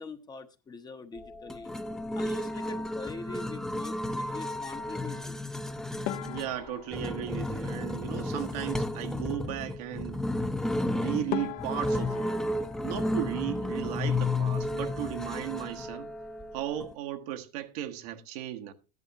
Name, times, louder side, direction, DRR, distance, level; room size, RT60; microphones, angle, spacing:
voice 1, 0.0-1.7 2.1-5.4, left 4 dB, 20° left, 1.0 m, -43 dB
sound 1, 1.2-16.9, left 2 dB, 5° left, 0.7 m, -33 dB
sound 2, 6.0-8.5 10.8-10.9 11.3-14.1 14.3-15.1 15.4-15.6 15.9-16.0 16.6-17.0, left 12 dB, 65° left, 1.3 m, -41 dB
voice 2, 6.2-10.2 10.9-12.3 12.8-16.1 16.5-18.7, right 12 dB, 70° right, 1.4 m, -36 dB
13.5 x 11.0 x 2.9 m
supercardioid pair, 120°, 20 cm